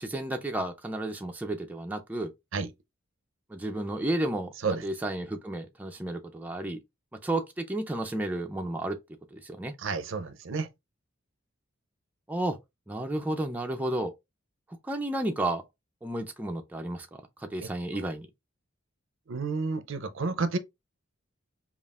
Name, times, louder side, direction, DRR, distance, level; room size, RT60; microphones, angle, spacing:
voice 1, 0.0-2.3 3.5-4.5 4.8-6.8 7.2-9.0 9.3-9.7 12.3-12.6 12.9-14.1 14.8-15.6 16.0-17.1 17.4-18.3, right 1 dB, 10° right, 0.4 m, -32 dB
voice 2, 9.8-10.7 17.6-18.0 19.3-20.6, right 4 dB, 65° right, 0.5 m, -31 dB
5.2 x 2.4 x 2.4 m
head